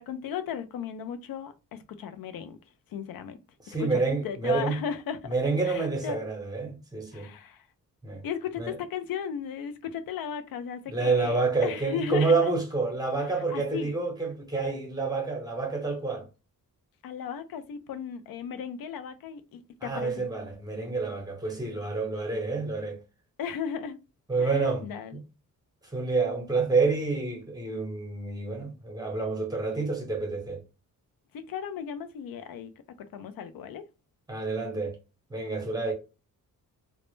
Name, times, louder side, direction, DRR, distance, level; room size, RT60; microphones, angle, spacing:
voice 1, 0.0-2.6 2.9-3.4 3.8-5.3 5.6-6.2 7.1-7.7 8.2-12.5 13.5-14.0 17.0-20.3 23.4-24.0 24.4-25.2 31.3-32.7 33.0-33.8, left 8 dB, 80° left, 0.5 m, -36 dB
voice 2, 3.6-4.8 5.3-7.3 8.0-8.2 8.6-8.8 10.9-16.2 19.8-23.0 24.3-24.9 25.1-25.2 25.9-30.6 34.3-35.0 35.3-35.9, right 4 dB, 10° right, 0.8 m, -28 dB
2.0 x 2.0 x 3.0 m
cardioid pair, 85°, 34 cm